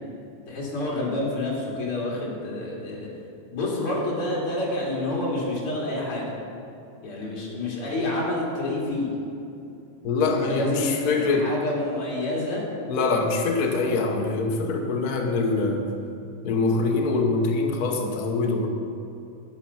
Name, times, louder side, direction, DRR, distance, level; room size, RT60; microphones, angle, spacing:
voice 1, 0.5-3.1 3.5-6.3 7.0-9.1 10.4-12.6, left 2 dB, 50° left, -4 dB, 3.5 m, -28 dB
voice 2, 10.0-11.5 12.9-15.8 16.4-18.7, left 3 dB, 85° left, 2 dB, 0.8 m, -24 dB
12.0 x 9.6 x 5.7 m, 2.7 s
omnidirectional pair, 3.3 m